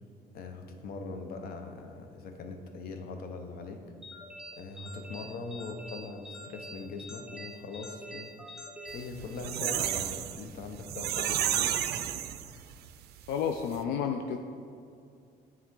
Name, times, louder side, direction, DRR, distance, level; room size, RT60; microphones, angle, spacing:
voice 1, 0.3-3.8 4.5-8.3 8.9-11.8, left 3 dB, 65° left, 5 dB, 0.8 m, -41 dB
sound 1, 4.0-9.8, equal, 5° right, 0.6 m, -46 dB
sound 2, 9.0-12.9 13.3-13.4 13.6-13.8, right 11 dB, 70° right, 0.4 m, -31 dB
voice 2, 13.3-14.4, left 7 dB, 90° left, 4 dB, 0.4 m, -31 dB
9.1 x 3.6 x 3.7 m, 2.4 s
cardioid pair, 110°, 17 cm